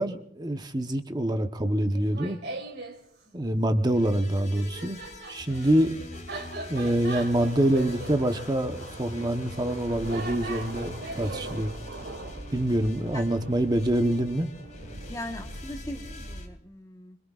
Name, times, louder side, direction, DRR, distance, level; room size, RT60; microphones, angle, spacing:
voice 1, 0.0-2.4 3.3-5.0 5.3-5.9 6.7-11.7 12.5-14.5, right 1 dB, 20° right, 6 dB, 1.0 m, -26 dB
Laughter, 1.9-3.0 4.2-11.5, right 2 dB, 60° right, 3.2 m, -40 dB
sound 1, 3.9-16.5, left 1 dB, 40° left, 2.5 m, -43 dB
sound 2, 7.0-16.4, right 2 dB, 80° right, 1.7 m, -43 dB
voice 2, 12.5-12.9 13.1-13.2 15.1-17.2, left 1 dB, 20° left, 4 dB, 1.2 m, -40 dB
26.5 x 21.0 x 2.5 m, 0.64 s
head